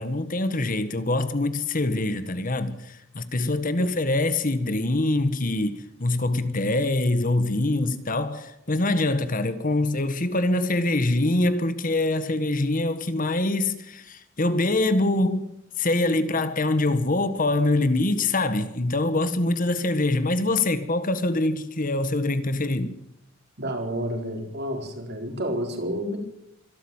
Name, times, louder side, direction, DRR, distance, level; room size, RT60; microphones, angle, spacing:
voice 1, 0.0-15.5 15.8-22.9, left 2 dB, 40° left, 1.6 m, -24 dB
voice 2, 23.6-26.2, equal, 55° right, 4.7 m, -30 dB
25.5 x 12.5 x 8.9 m
head